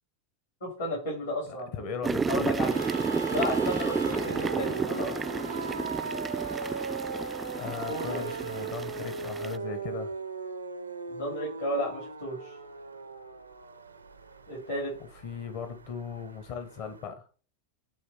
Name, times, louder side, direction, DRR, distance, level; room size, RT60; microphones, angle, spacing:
voice 1, 0.6-1.7 2.3-2.8 3.3-5.2 7.9-8.3 11.1-12.6 14.5-14.9, equal, 70° left, 3.3 m, -33 dB
voice 2, 1.4-2.5 7.6-10.1 15.2-17.3, left 6 dB, 50° left, 1.0 m, -38 dB
sound 1, 2.0-9.6, right 5 dB, 20° right, 0.3 m, -31 dB
sound 2, 2.7-17.1, right 4 dB, 85° right, 0.5 m, -38 dB
8.5 x 3.3 x 4.6 m
figure-of-eight pair, 90°, 0 cm